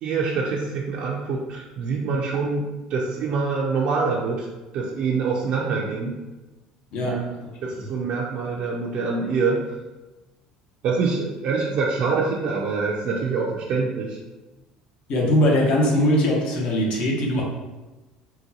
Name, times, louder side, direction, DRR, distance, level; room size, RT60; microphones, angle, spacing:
voice 1, 0.0-2.6 2.9-4.5 4.7-6.2 7.0-7.3 7.6-9.6 10.8-14.2, right 4 dB, 55° right, -3 dB, 0.5 m, -25 dB
voice 2, 15.1-17.4, equal, 60° left, -2 dB, 0.9 m, -20 dB
3.8 x 2.2 x 2.8 m, 1.1 s
supercardioid pair, 115°, 2 cm